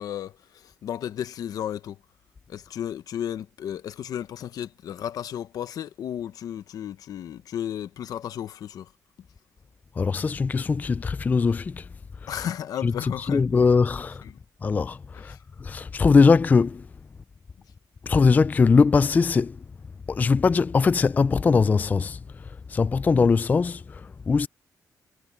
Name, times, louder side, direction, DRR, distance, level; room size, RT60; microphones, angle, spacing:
voice 1, 0.0-2.0 2.5-8.9 12.3-13.5 14.2-14.3 15.3-15.4, left 10 dB, 80° left, 1.0 m, -33 dB
voice 2, 10.0-11.8 12.8-14.2 14.6-15.4 15.6-16.8 18.0-19.6 20.1-22.2 22.7-24.5, left 4 dB, 25° left, 0.3 m, -21 dB
cardioid pair, 125°, 6 cm